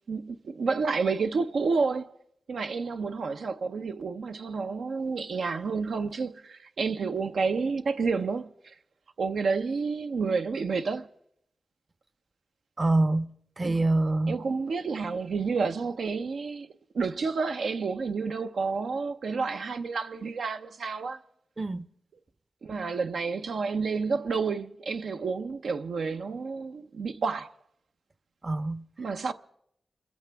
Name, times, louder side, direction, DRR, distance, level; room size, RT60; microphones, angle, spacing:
voice 1, 0.1-2.1 2.5-8.7 9.2-11.1 13.6-13.8 14.3-21.2 22.6-27.5 29.0-29.3, right 4 dB, 85° right, 0.6 m, -30 dB
voice 2, 12.8-13.3 13.6-14.4 21.6-21.9 28.4-28.8, right 2 dB, 35° right, 0.6 m, -25 dB
27.0 x 14.5 x 3.4 m
cardioid pair, 70°, 0 cm